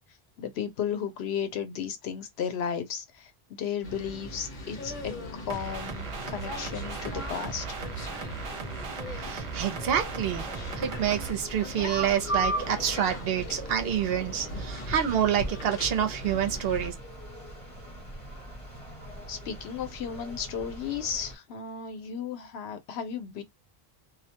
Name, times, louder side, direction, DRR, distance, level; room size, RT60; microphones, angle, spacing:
voice 1, 0.4-5.2 5.4-7.8 19.3-23.4, left 7 dB, 90° left, 0.9 m, -34 dB
sound 1, 3.8-16.9, right 1 dB, 55° left, 0.8 m, -37 dB
sound 2, 5.5-11.3, right 4 dB, 45° right, 0.5 m, -37 dB
voice 2, 9.2-10.5 10.7-16.9, right 9 dB, 70° right, 0.8 m, -28 dB
sound 3, 9.8-21.4, equal, 30° left, 1.3 m, -43 dB
2.3 x 2.1 x 2.8 m
omnidirectional pair, 1.0 m